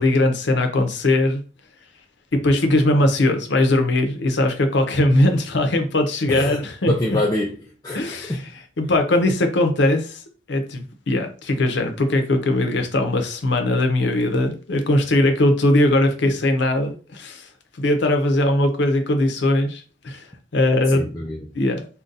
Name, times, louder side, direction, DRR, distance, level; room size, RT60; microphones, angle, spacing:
voice 1, 0.0-1.4 2.3-6.9 7.9-8.4 8.8-10.2 10.5-17.5 17.8-20.2 20.5-21.0 21.5-21.9, left 1 dB, 60° left, 0.6 m, -20 dB
voice 2, 6.3-6.6 6.9-7.6 7.8-8.4 20.9-21.5, left 1 dB, 20° left, 0.3 m, -25 dB
3.8 x 2.2 x 2.5 m
head